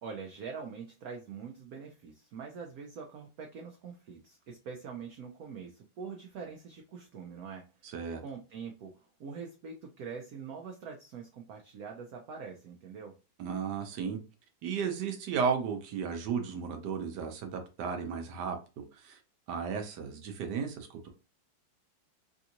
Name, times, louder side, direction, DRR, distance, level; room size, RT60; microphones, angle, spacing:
voice 1, 0.0-7.9 8.2-13.2, right 5 dB, 85° right, 0.7 m, -44 dB
voice 2, 7.8-8.2 13.4-14.2 14.6-19.2 19.5-21.1, right 6 dB, 65° right, 1.2 m, -34 dB
3.5 x 2.6 x 2.8 m
omnidirectional pair, 2.2 m